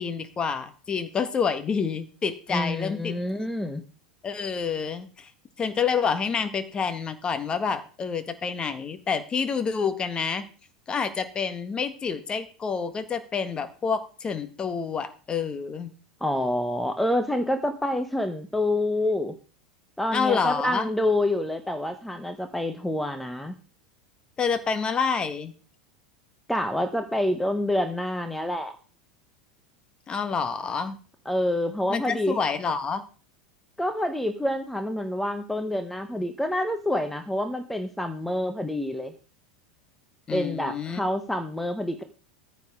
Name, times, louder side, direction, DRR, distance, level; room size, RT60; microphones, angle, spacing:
voice 1, 0.0-3.1 4.2-5.3 5.6-10.4 10.9-15.9 20.1-20.9 24.4-25.5 30.1-31.0 31.9-33.0 40.3-41.0, left 6 dB, 25° left, 10 dB, 1.6 m, -28 dB
voice 2, 2.5-3.8 16.2-19.3 20.0-23.5 26.5-28.7 31.3-32.4 33.8-39.1 40.3-42.0, left 1 dB, 5° left, 8 dB, 1.2 m, -27 dB
14.5 x 8.4 x 3.7 m, 0.38 s
figure-of-eight pair, 80°, 4 cm